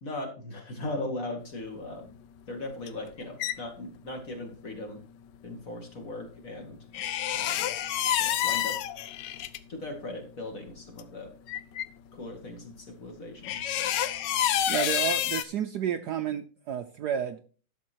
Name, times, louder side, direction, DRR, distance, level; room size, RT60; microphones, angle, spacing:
voice 1, 0.0-2.1 2.5-5.0 5.4-6.8 7.3-7.7 8.2-8.8 9.7-11.3 12.1-13.9, left 2 dB, 40° left, 3 dB, 2.5 m, -38 dB
sound 1, 2.9-3.5 6.9-9.6 10.7-10.8 11.0-11.1 11.5-11.9 13.4-15.4, left 11 dB, 70° left, 1.2 m, -28 dB
voice 2, 14.7-17.5, right 9 dB, 65° right, 8 dB, 1.1 m, -31 dB
12.0 x 6.8 x 4.5 m, 0.39 s
omnidirectional pair, 2.2 m